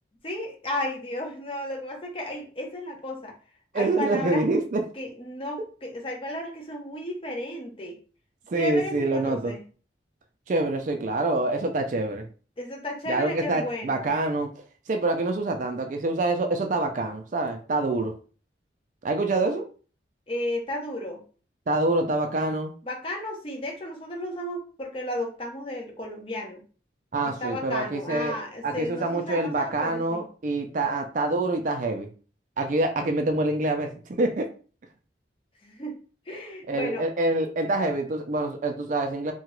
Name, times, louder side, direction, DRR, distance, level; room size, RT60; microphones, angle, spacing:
voice 1, 0.2-3.3 3.7-4.4 4.9-8.0 8.6-9.6 12.6-14.1 20.3-21.2 22.8-26.6 27.2-30.3 35.6-36.0 36.3-37.1, left 1 dB, 30° left, 1 dB, 0.6 m, -33 dB
voice 2, 3.7-4.8 8.5-9.5 10.5-12.3 13.1-14.5 14.9-18.1 19.0-19.6 21.7-22.7 27.1-28.3 28.6-32.1 32.6-34.5 36.7-39.3, right 2 dB, 45° right, 5 dB, 0.4 m, -26 dB
2.8 x 2.3 x 3.0 m, 0.38 s
head